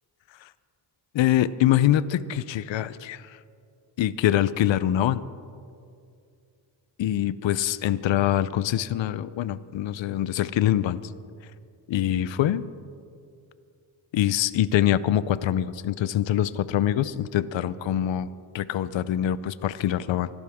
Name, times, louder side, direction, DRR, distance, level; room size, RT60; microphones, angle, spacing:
voice 1, 1.1-3.4 4.0-5.2 7.0-11.1 11.9-12.6 14.1-18.3 18.5-20.3, left 12 dB, 70° left, 16 dB, 0.6 m, -24 dB
24.5 x 12.5 x 3.6 m, 2.3 s
cardioid pair, 90°, 46 cm